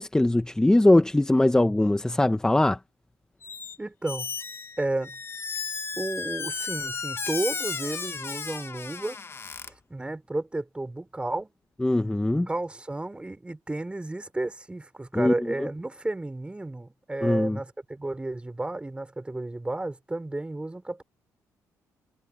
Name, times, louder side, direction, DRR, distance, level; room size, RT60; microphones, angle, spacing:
voice 1, 0.0-2.8 11.8-12.5 15.1-15.3 17.2-17.6, left 1 dB, 10° left, 1.0 m, -21 dB
Squeak, 3.4-3.8 4.0-9.7, left 5 dB, 40° left, 1.5 m, -34 dB
voice 2, 3.8-4.3 4.8-5.2 6.0-9.2 9.7-11.5 12.5-21.0, right 2 dB, 15° right, 5.9 m, -32 dB
cardioid pair, 75°, 7 cm